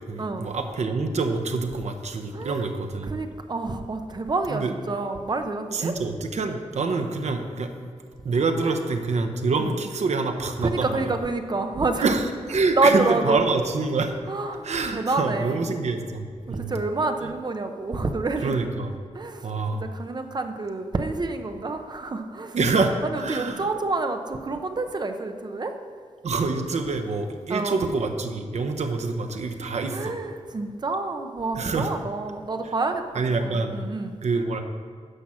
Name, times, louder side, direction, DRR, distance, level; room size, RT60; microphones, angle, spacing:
voice 1, 0.1-3.2 4.5-4.7 5.7-7.9 8.2-11.2 12.0-12.2 12.5-14.1 14.6-16.7 18.4-18.9 19.4-19.9 22.5-23.7 26.2-30.1 31.6-31.9 33.1-33.8 34.2-34.6, right 3 dB, 65° right, 6 dB, 0.9 m, -26 dB
voice 2, 2.3-2.6 3.0-5.9 8.6-8.8 10.6-12.1 12.7-13.4 14.3-14.7 14.9-15.7 16.5-18.6 19.1-22.6 23.0-25.7 27.5-27.8 29.9-33.0 33.4-34.1, right 3 dB, 35° right, 7 dB, 0.7 m, -28 dB
10.0 x 5.8 x 6.3 m, 2.1 s
wide cardioid pair, 140°, 12 cm